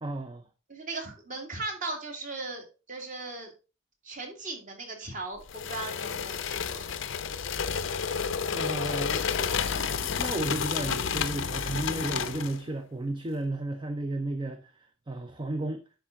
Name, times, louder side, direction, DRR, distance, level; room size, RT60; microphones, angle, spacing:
voice 1, 0.0-0.4 8.5-9.5 10.2-15.8, right 2 dB, 25° right, 0.5 m, -33 dB
voice 2, 0.7-3.5 4.0-6.8, right 3 dB, 40° right, 2.1 m, -38 dB
sound 1, 5.5-12.6, left 6 dB, 65° left, 0.6 m, -31 dB
10.5 x 4.5 x 3.7 m
head